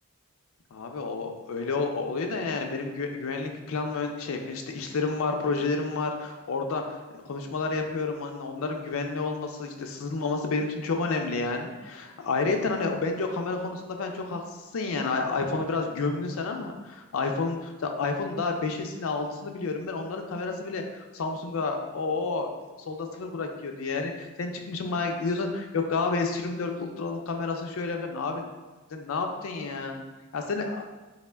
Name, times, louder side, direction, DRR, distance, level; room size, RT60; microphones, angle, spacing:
voice 1, 0.7-6.8 7.2-14.4 14.7-22.5 22.9-28.5 28.9-30.0 30.3-30.8, left 3 dB, 70° left, 3 dB, 0.4 m, -30 dB
4.2 x 2.0 x 3.3 m, 1.2 s
head